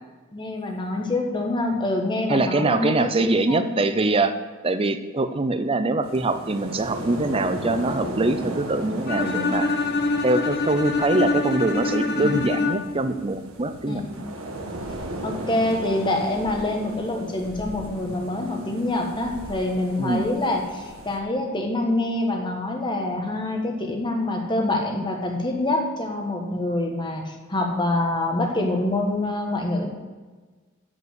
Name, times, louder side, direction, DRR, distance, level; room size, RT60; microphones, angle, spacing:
voice 1, 0.3-3.7 9.2-9.6 12.1-12.4 13.9-14.2 15.2-29.9, left 2 dB, 25° left, 1 dB, 1.5 m, -26 dB
voice 2, 2.3-4.3 4.6-9.7 10.2-14.0 20.0-20.3, right 2 dB, 25° right, 10 dB, 0.6 m, -23 dB
sound 1, 6.0-21.2, right 1 dB, 90° right, 1.4 m, -36 dB
Bowed string instrument, 9.1-13.1, left 3 dB, 50° left, 1.2 m, -25 dB
9.5 x 5.3 x 8.1 m, 1.3 s
head